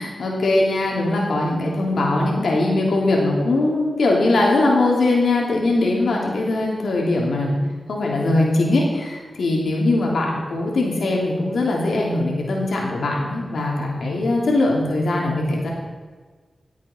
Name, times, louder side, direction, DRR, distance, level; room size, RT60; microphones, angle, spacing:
voice 1, 0.0-7.6 7.9-15.7, left 2 dB, 90° left, -2 dB, 3.0 m, -21 dB
17.5 x 8.4 x 4.5 m, 1.5 s
cardioid pair, 50°, 0 cm